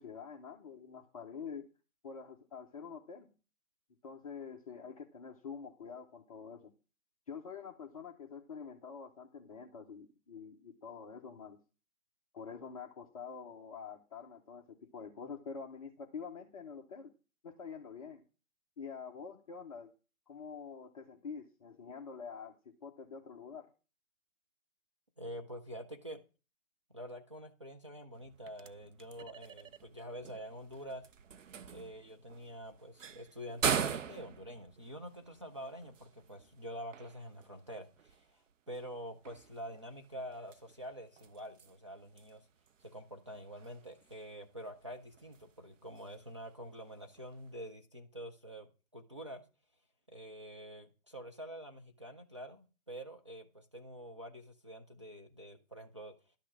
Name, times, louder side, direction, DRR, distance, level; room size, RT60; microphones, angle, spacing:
voice 1, 0.0-1.7 2.0-3.3 4.0-6.7 7.3-11.6 12.3-17.1 17.4-18.2 18.8-19.9 20.3-23.7, left 6 dB, 25° left, 0.7 m, -47 dB
voice 2, 25.2-26.2 26.9-31.0 31.7-42.4 42.8-49.4 50.1-56.1, equal, 20° right, 0.4 m, -47 dB
sound 1, 28.1-47.7, right 7 dB, 60° right, 0.8 m, -43 dB
11.5 x 6.2 x 6.0 m
figure-of-eight pair, 140°, 43 cm